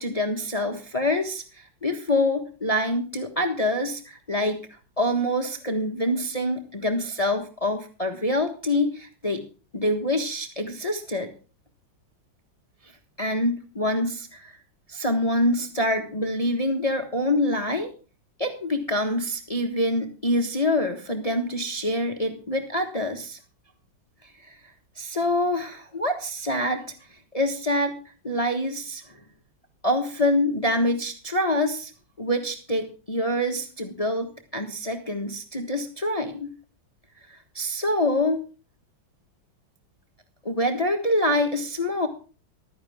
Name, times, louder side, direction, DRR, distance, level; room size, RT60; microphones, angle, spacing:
voice 1, 0.0-4.6 5.0-9.4 9.7-11.3 13.2-14.5 14.9-17.9 18.4-23.4 24.4-24.6 25.0-26.8 27.3-27.9 28.2-29.0 29.8-31.9 32.2-36.5 37.3-38.4 40.4-42.1, left 1 dB, 20° left, 5 dB, 1.3 m, -25 dB
15.0 x 13.0 x 3.5 m, 0.36 s
omnidirectional pair, 2.1 m